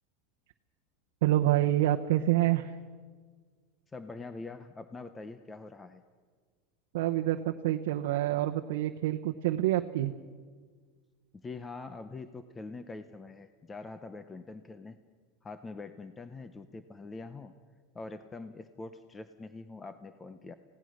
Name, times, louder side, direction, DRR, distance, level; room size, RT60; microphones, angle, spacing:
voice 1, 1.2-2.7 6.9-10.1, right 14 dB, 65° right, 4 dB, 0.9 m, -27 dB
voice 2, 3.9-6.0 11.4-15.0 15.4-17.5 17.9-20.5, left 3 dB, 10° left, 10 dB, 0.5 m, -44 dB
28.5 x 17.0 x 6.4 m, 1.5 s
supercardioid pair, 180°, 0 cm